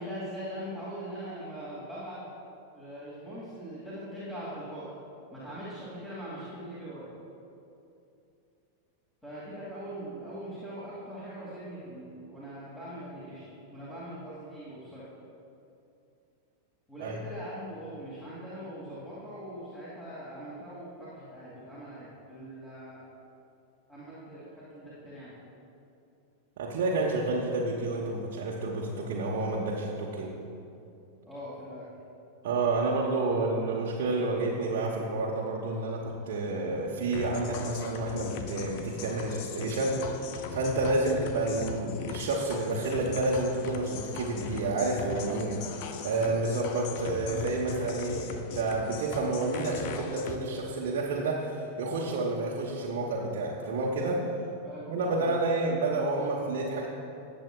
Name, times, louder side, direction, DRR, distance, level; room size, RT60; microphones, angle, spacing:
voice 1, 0.0-2.2 2.7-4.9 5.3-7.1 9.2-15.1 16.9-23.0 23.9-25.3 31.3-31.9 54.6-55.3, equal, 10° left, -10 dB, 2.4 m, -41 dB
voice 2, 26.6-30.3 32.4-40.0 40.5-54.2 54.9-56.9, right 2 dB, 55° right, -4 dB, 1.0 m, -30 dB
sound 1, 37.1-50.4, left 6 dB, 45° left, 0.6 m, -39 dB
18.5 x 7.5 x 2.3 m, 2.7 s
figure-of-eight pair, 90°, 0 cm